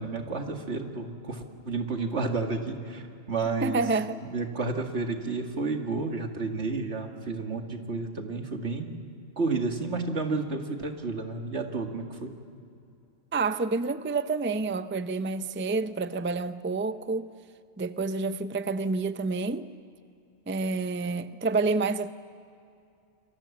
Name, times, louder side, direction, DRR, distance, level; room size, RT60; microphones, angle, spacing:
voice 1, 0.0-3.8 4.2-8.9 9.4-12.3, right 3 dB, 80° right, 2.4 m, -31 dB
voice 2, 3.6-4.2 13.3-17.3 17.8-19.7 20.5-22.1, right 3 dB, 15° right, 0.4 m, -28 dB
28.5 x 22.5 x 7.3 m
omnidirectional pair, 1.1 m